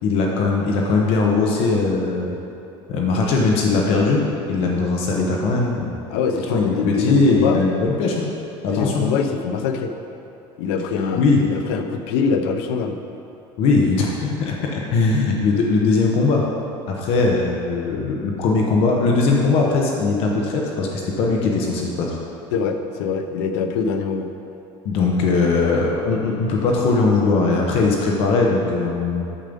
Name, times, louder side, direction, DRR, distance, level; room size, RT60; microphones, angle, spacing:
voice 1, 0.0-2.3 2.9-4.2 4.5-5.7 6.5-8.3 8.6-9.1 11.1-11.5 13.6-16.4 16.9-22.2 24.8-29.2, left 3 dB, 50° left, -1 dB, 1.1 m, -20 dB
voice 2, 6.1-7.6 8.6-9.9 10.6-11.2 11.5-13.0 22.5-24.3, left 6 dB, 85° left, 6 dB, 0.8 m, -23 dB
8.7 x 7.5 x 5.3 m, 2.9 s
cardioid pair, 170°, 12 cm